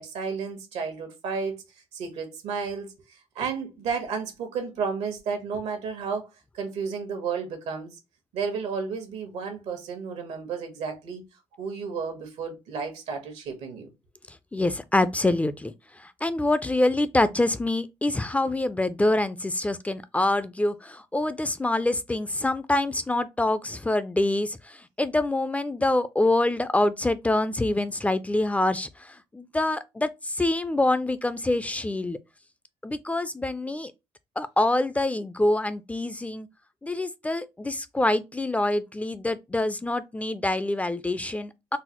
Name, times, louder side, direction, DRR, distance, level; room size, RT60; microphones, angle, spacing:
voice 1, 0.0-1.6 1.9-6.3 6.5-8.0 8.3-11.2 11.6-13.9, right 5 dB, 85° right, 1.1 m, -32 dB
voice 2, 14.5-15.7 16.0-32.2 32.8-33.9 34.4-36.5 36.8-41.8, left 2 dB, 15° left, 0.3 m, -25 dB
3.9 x 2.1 x 2.9 m
cardioid pair, 85°, 11 cm